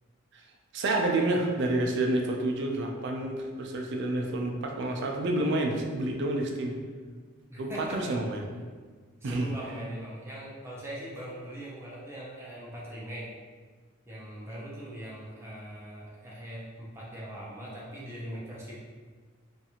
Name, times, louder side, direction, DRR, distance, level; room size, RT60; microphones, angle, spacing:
voice 1, 0.7-6.8 7.6-8.4 9.2-9.5, right 2 dB, 55° right, 2 dB, 0.4 m, -29 dB
voice 2, 7.5-8.1 9.2-13.3 14.1-18.7, right 1 dB, 10° right, -6 dB, 0.6 m, -41 dB
2.6 x 2.4 x 2.8 m, 1.5 s
head